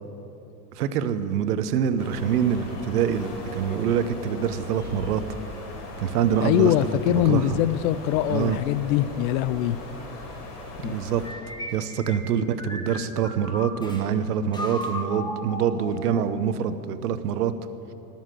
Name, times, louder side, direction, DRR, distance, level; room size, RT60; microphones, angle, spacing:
voice 1, 0.7-5.2 6.0-6.7 7.1-7.6 8.3-8.6 10.8-11.2 11.7-17.5, right 8 dB, 85° right, 11 dB, 1.0 m, -25 dB
sound 1, 2.0-11.3, left 2 dB, 85° left, 3.9 m, -39 dB
voice 2, 6.4-9.8 10.8-11.0, left 12 dB, 65° left, 16 dB, 0.7 m, -23 dB
sound 2, 11.2-14.0 14.5-16.3, left 1 dB, 10° left, 1.9 m, -36 dB
18.5 x 7.3 x 7.7 m, 3.0 s
hypercardioid pair, 105°, 45 cm